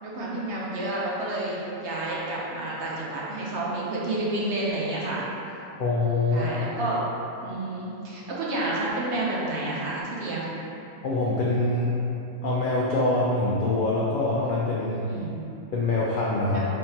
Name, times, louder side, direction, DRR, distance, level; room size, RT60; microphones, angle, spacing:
voice 1, 0.0-5.2 6.3-7.0 7.4-10.5 15.1-15.5 16.5-16.6, right 2 dB, 60° right, -5 dB, 0.9 m, -30 dB
voice 2, 5.8-6.5 11.0-11.9 12.4-15.0 15.7-16.6, left 2 dB, 70° left, -6 dB, 0.5 m, -24 dB
4.4 x 3.6 x 2.8 m, 2.8 s
omnidirectional pair, 1.5 m